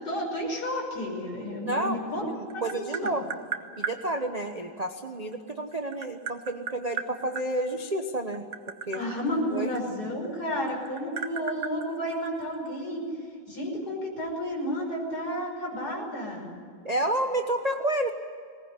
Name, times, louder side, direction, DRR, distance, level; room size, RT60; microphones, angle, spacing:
voice 1, 0.0-3.2 8.9-13.1 13.5-16.5, equal, 50° left, 0 dB, 6.1 m, -32 dB
voice 2, 1.6-2.0 2.4-3.3 3.8-8.5 8.9-9.0 9.5-9.7 16.8-18.1, right 1 dB, 25° right, 4 dB, 1.0 m, -30 dB
Tap, 2.1-4.0 5.3-7.5 8.2-10.4 10.7-12.7, right 7 dB, 55° right, 1.8 m, -35 dB
21.0 x 19.5 x 9.9 m, 2.3 s
omnidirectional pair, 2.1 m